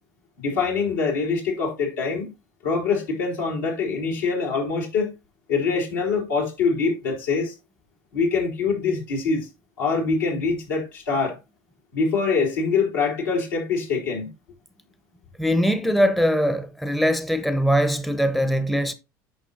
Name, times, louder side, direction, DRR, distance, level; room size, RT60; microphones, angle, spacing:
voice 1, 0.4-2.3 2.6-5.1 5.5-7.5 8.1-9.5 9.8-11.4 11.9-14.3, left 4 dB, 70° left, 3.7 m, -24 dB
voice 2, 15.4-18.9, equal, ahead, 0.8 m, -21 dB
9.4 x 6.0 x 2.8 m
figure-of-eight pair, 70°, 10 cm